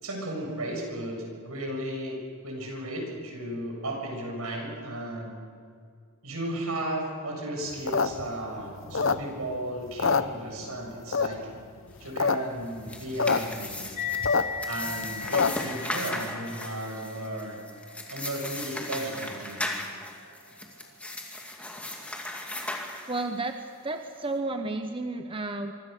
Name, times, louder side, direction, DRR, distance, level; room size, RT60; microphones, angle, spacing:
voice 1, 0.0-2.2 2.4-5.4 6.2-11.4 12.0-13.8 14.7-17.6 18.1-19.7, right 1 dB, 80° right, 1 dB, 6.9 m, -34 dB
sound 1, 7.7-9.6 9.9-10.8 11.1-11.6 12.0-12.4 12.6-12.7 12.9-13.4 13.7-15.7, left 5 dB, 60° left, 0.8 m, -25 dB
sound 2, 12.6-23.5, left 1 dB, 5° left, 2.3 m, -37 dB
sound 3, 14.0-20.9, left 6 dB, 35° left, 1.2 m, -39 dB
voice 2, 23.1-25.7, right 2 dB, 25° right, 6 dB, 1.0 m, -32 dB
25.0 x 25.0 x 6.7 m, 2.2 s
head